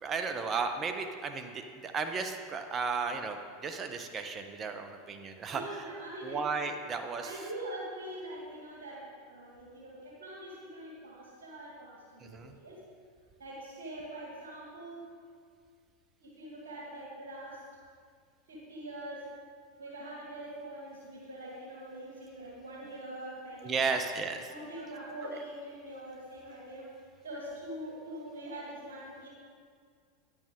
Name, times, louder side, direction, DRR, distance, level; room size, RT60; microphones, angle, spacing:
voice 1, 0.0-5.6 6.2-7.3 12.2-12.5 23.6-24.4 25.2-25.4, right 5 dB, 30° right, 6 dB, 0.9 m, -34 dB
voice 2, 5.5-6.5 7.2-12.8 13.4-15.1 16.2-17.6 18.5-19.3 19.8-24.0 24.5-26.9 27.2-29.3, right 1 dB, 85° right, -4 dB, 2.0 m, -43 dB
10.0 x 8.8 x 3.7 m, 2.1 s
hypercardioid pair, 90°, 0 cm